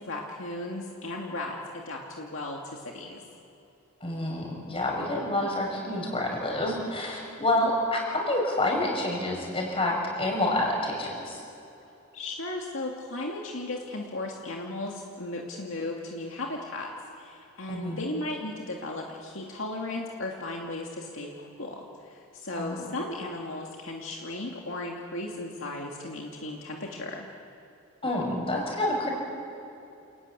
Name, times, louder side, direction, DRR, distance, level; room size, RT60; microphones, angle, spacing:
voice 1, 0.0-3.2 7.6-7.7 12.1-27.3, left 2 dB, 70° left, 0 dB, 2.4 m, -36 dB
voice 2, 4.0-11.4 17.7-18.0 22.6-22.8 28.0-29.1, left 1 dB, 30° left, 0 dB, 6.4 m, -28 dB
28.5 x 16.0 x 9.8 m, 2.9 s
head